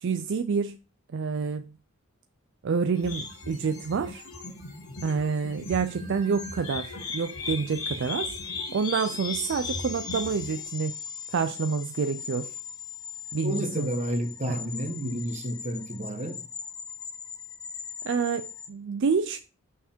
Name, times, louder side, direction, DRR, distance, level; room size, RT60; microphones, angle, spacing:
voice 1, 0.0-0.8 1.1-1.7 2.6-4.2 5.0-8.4 8.7-10.9 11.3-12.6 13.3-13.9 14.5-14.6 18.0-19.4, right 5 dB, 55° right, 0.4 m, -28 dB
sound 1, 3.0-10.6, left 4 dB, 80° left, 2.1 m, -37 dB
sound 2, 5.7-18.7, left 7 dB, 20° left, 0.5 m, -40 dB
voice 2, 13.4-16.4, equal, 30° right, 1.1 m, -31 dB
6.5 x 5.7 x 4.4 m
head